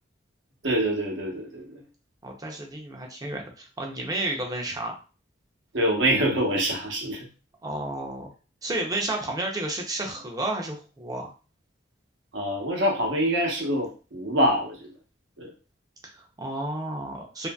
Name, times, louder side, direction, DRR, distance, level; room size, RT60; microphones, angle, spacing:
voice 1, 0.6-1.8 5.7-7.2 12.3-14.8 15.4-15.5, equal, 75° right, 0 dB, 0.9 m, -25 dB
voice 2, 2.2-4.9 7.6-8.3 8.6-11.3 16.0-17.5, right 2 dB, 20° right, 2 dB, 0.5 m, -31 dB
2.7 x 2.6 x 2.2 m, 0.35 s
head